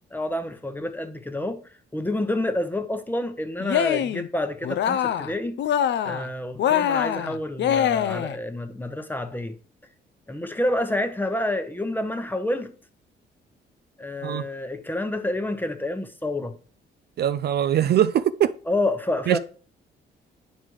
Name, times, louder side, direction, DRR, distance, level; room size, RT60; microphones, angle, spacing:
voice 1, 0.1-1.6 1.9-5.5 6.0-9.5 10.3-12.7 14.0-16.5 18.7-19.4, left 1 dB, 10° left, 0.9 m, -28 dB
Cheering, 3.6-4.3 4.6-5.3 5.6-6.3 6.6-8.4, left 9 dB, 65° left, 0.6 m, -24 dB
voice 2, 17.2-18.5 19.3-19.4, right 10 dB, 55° right, 0.4 m, -21 dB
9.1 x 4.2 x 4.7 m
cardioid pair, 90°, 20 cm